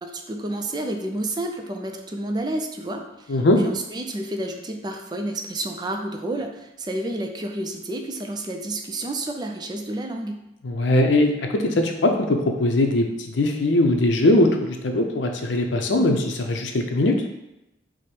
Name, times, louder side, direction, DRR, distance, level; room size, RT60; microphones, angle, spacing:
voice 1, 0.0-10.4, right 1 dB, 25° right, 4 dB, 0.4 m, -30 dB
voice 2, 3.3-3.6 10.6-17.2, left 1 dB, 85° left, 4 dB, 0.6 m, -20 dB
4.8 x 2.1 x 4.3 m, 0.91 s
head